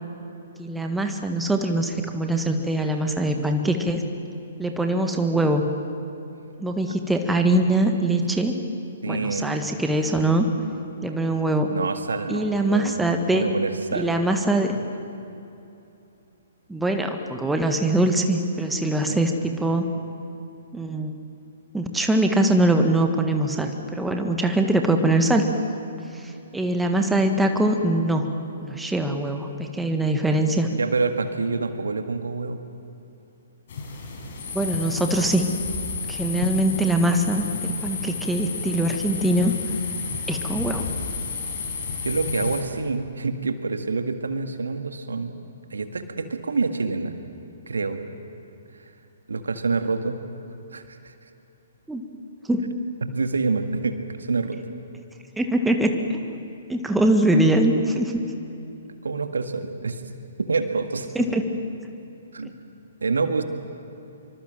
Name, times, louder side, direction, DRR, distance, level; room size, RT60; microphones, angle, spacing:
voice 1, 0.6-4.0 4.6-5.7 6.6-8.5 9.1-10.5 11.0-11.7 12.3-13.5 13.9-14.8 16.7-19.3 19.6-19.9 20.7-21.1 21.7-25.5 26.1-30.7 34.5-35.5 36.1-39.5 40.3-40.9 51.9-52.0 52.5-52.6 55.4-56.4 56.7-58.2 61.2-61.4, right 1 dB, 5° right, 4 dB, 1.6 m, -22 dB
voice 2, 9.0-9.5 11.7-13.0 13.3-14.2 19.1-19.2 30.8-32.6 42.0-45.3 45.7-47.2 47.7-48.0 49.3-50.2 50.7-51.1 53.0-54.6 59.0-60.0 60.4-61.1 62.3-62.5 63.0-63.4, right 4 dB, 70° right, 7 dB, 1.8 m, -27 dB
sound 1, 33.7-42.6, left 5 dB, 50° left, 4.8 m, -31 dB
25.5 x 24.5 x 7.6 m, 2.8 s
figure-of-eight pair, 125°, 0 cm